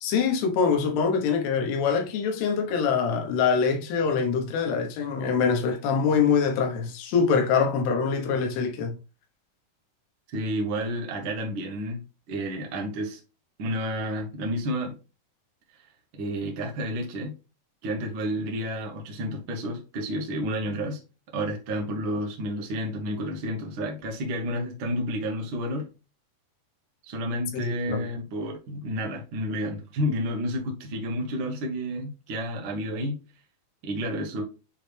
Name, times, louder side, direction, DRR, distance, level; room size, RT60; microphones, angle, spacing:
voice 1, 0.0-9.0 27.6-28.0, left 6 dB, 85° left, 3.3 m, -24 dB
voice 2, 10.3-12.0 12.3-13.2 13.6-15.0 16.1-17.3 17.8-21.0 21.3-25.9 27.0-33.2 33.8-34.4, equal, 75° right, 1.1 m, -30 dB
9.7 x 3.2 x 3.4 m
omnidirectional pair, 4.6 m